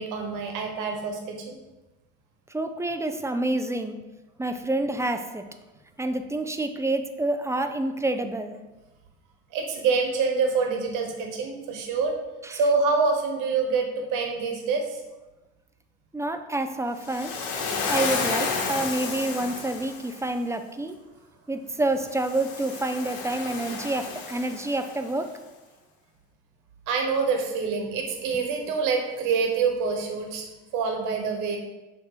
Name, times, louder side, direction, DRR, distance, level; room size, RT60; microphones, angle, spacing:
voice 1, 0.0-1.6 9.5-12.2 12.5-15.0 26.9-30.5 30.7-31.6, right 4 dB, 75° right, 3 dB, 1.3 m, -26 dB
voice 2, 2.5-4.0 4.4-5.4 6.0-8.6 12.4-12.6 16.1-17.3 17.9-21.0 21.5-25.3, right 2 dB, 10° right, 7 dB, 0.4 m, -28 dB
Waves surf, 17.0-20.2 22.0-25.1, left 4 dB, 80° left, 1.1 m, -31 dB
6.4 x 3.0 x 5.0 m, 1.1 s
supercardioid pair, 95°, 32 cm